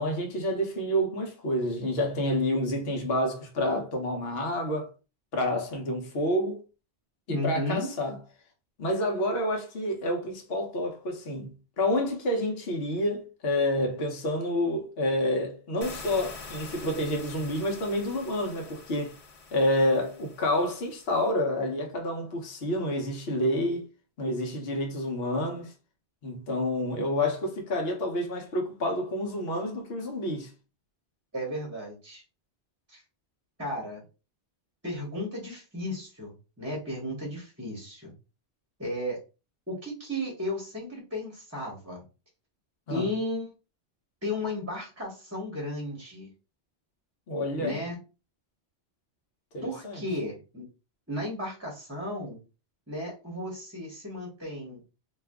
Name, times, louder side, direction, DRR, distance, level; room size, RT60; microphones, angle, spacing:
voice 1, 0.0-4.9 5.3-6.6 7.4-8.2 8.8-19.2 19.5-23.9 24.2-25.7 26.2-30.5 42.9-43.0 47.3-47.8 49.5-50.0, left 1 dB, 70° left, 1.0 m, -28 dB
voice 2, 7.3-7.9 31.3-32.2 32.9-33.0 33.6-34.0 34.8-38.1 38.8-39.2 39.7-42.0 42.9-43.5 44.2-46.3 47.6-48.0 49.6-50.6 51.1-52.4 52.9-54.8, left 1 dB, 15° right, 0.9 m, -34 dB
sound 1, 15.8-21.3, left 3 dB, 45° left, 0.5 m, -45 dB
2.6 x 2.3 x 3.4 m
omnidirectional pair, 1.1 m